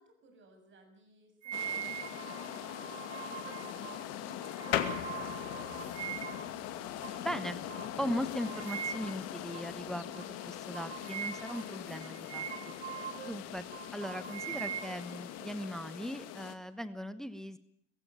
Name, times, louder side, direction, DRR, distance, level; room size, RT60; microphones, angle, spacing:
voice 1, 0.0-6.6, right 1 dB, 35° right, 7 dB, 7.1 m, -61 dB
sound 1, 1.4-6.5 7.0-7.2 7.7-7.9 8.4-9.3 9.5-9.7 10.1-10.3 10.7-13.4 13.7-15.5, right 10 dB, 75° right, 1.8 m, -42 dB
sound 2, 1.5-16.6, left 11 dB, 45° left, 2.3 m, -42 dB
sound 3, 4.7-14.9, left 12 dB, 60° left, 2.2 m, -43 dB
voice 2, 7.2-7.6 8.0-12.5 12.9-13.7 13.9-17.6, equal, ahead, 13 dB, 1.2 m, -39 dB
22.0 x 15.5 x 9.0 m, 0.69 s
hypercardioid pair, 85°, 35 cm